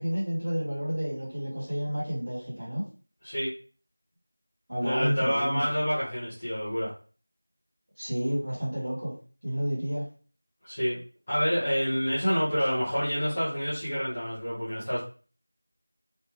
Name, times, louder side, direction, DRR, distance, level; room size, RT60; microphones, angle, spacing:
voice 1, 0.0-2.8 4.7-5.6 8.0-9.1 9.4-10.0, equal, 25° right, -10 dB, 1.9 m, -30 dB
voice 2, 4.8-6.9 10.6-11.0 11.3-15.0, equal, 20° left, -13 dB, 1.1 m, -28 dB
3.4 x 2.7 x 3.1 m, 0.38 s
figure-of-eight pair, 175°, 0 cm